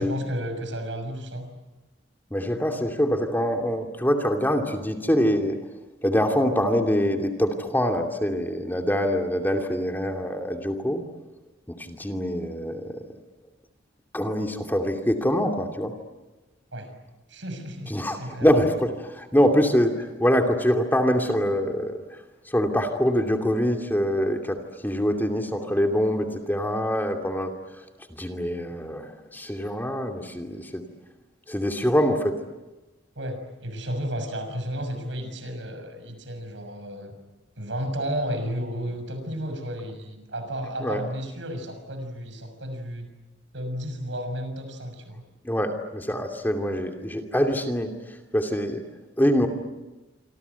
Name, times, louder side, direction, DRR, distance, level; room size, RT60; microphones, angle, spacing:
voice 1, 0.0-1.5 16.7-16.9 17.3-18.5 33.1-37.1 37.6-43.1 43.5-45.2, equal, 75° right, 8 dB, 6.5 m, -33 dB
voice 2, 2.3-5.6 6.0-11.0 11.8-12.9 14.1-15.9 17.9-22.0 22.5-27.5 28.1-30.8 31.5-32.4 40.8-41.0 45.4-47.9 48.3-48.8 49.2-49.5, equal, 10° left, 3 dB, 2.6 m, -24 dB
27.0 x 26.0 x 8.3 m, 1.1 s
head